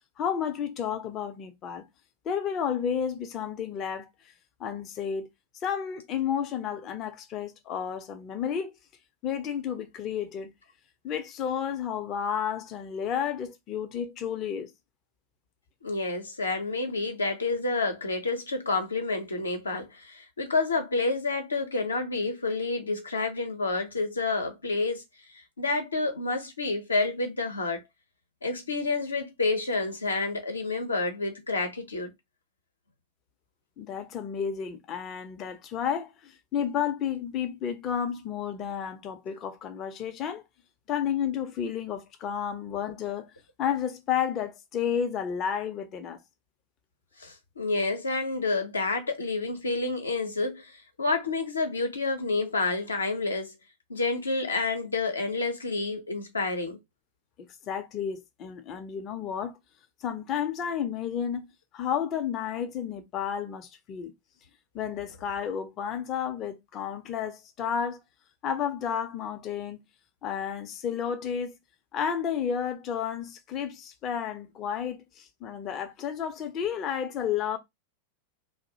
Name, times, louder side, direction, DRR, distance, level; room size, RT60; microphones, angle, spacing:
voice 1, 0.2-1.8 2.2-4.1 4.6-5.3 5.6-8.7 9.2-10.5 11.0-14.7 33.8-40.4 40.9-43.3 43.6-46.2 57.6-59.6 60.0-61.5 61.7-64.1 64.7-68.0 68.4-69.8 70.2-71.5 71.9-77.6, left 8 dB, 30° left, 0.5 m, -31 dB
voice 2, 15.8-25.0 25.3-27.8 28.4-32.1 47.2-53.6 53.9-56.8, left 3 dB, 75° left, 0.7 m, -29 dB
2.4 x 2.0 x 2.7 m
figure-of-eight pair, 90°, 0 cm